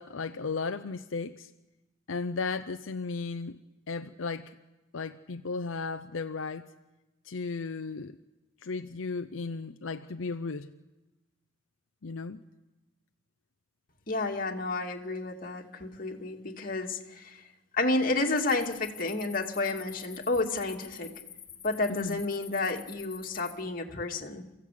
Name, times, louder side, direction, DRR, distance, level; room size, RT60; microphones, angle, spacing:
voice 1, 0.0-1.5 2.1-3.6 3.9-4.6 4.9-6.7 7.2-8.2 8.6-10.7 12.0-12.4 21.9-22.2, left 4 dB, 75° left, 0.7 m, -35 dB
voice 2, 14.1-17.4 17.7-21.1 21.6-24.5, left 2 dB, 45° left, 2.3 m, -31 dB
sound 1, 18.3-23.5, left 9 dB, 25° left, 3.0 m, -48 dB
29.0 x 15.5 x 8.5 m
head